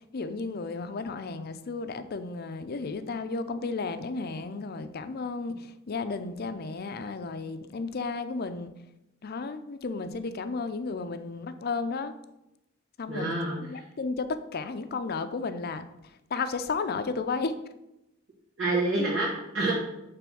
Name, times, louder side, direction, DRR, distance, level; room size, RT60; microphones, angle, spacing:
voice 1, 0.1-5.5 5.9-8.7 9.2-12.1 13.0-15.8 16.3-17.6, left 4 dB, 50° left, 10 dB, 0.5 m, -33 dB
voice 2, 13.1-13.9 18.6-19.7, right 2 dB, 70° right, -9 dB, 2.2 m, -28 dB
6.9 x 3.3 x 6.2 m, 0.89 s
head